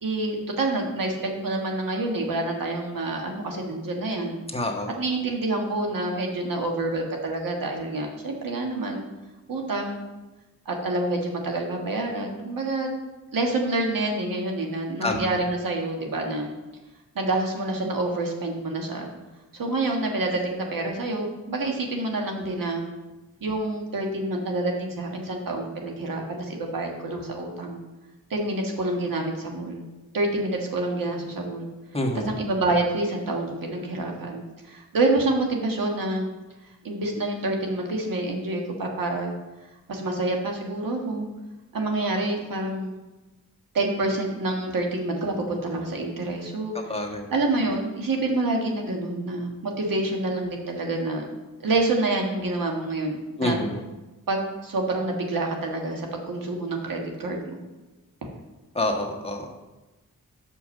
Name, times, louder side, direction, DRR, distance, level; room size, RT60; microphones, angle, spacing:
voice 1, 0.0-4.4 4.9-9.0 9.5-10.0 10.6-12.9 13.3-16.5 17.1-19.1 19.5-22.8 23.4-27.8 28.3-29.8 30.1-31.7 32.2-36.3 36.8-39.3 39.9-41.3 41.7-42.9 43.7-46.8 47.3-51.3 51.6-53.6 54.3-57.6, right 2 dB, 80° right, 1 dB, 1.6 m, -27 dB
voice 2, 4.5-4.9 15.0-15.2 31.9-32.3 46.9-47.3 53.4-53.8 58.7-59.5, left 1 dB, 15° left, 0 dB, 1.4 m, -27 dB
6.3 x 5.6 x 6.6 m, 1.1 s
cardioid pair, 70°, 33 cm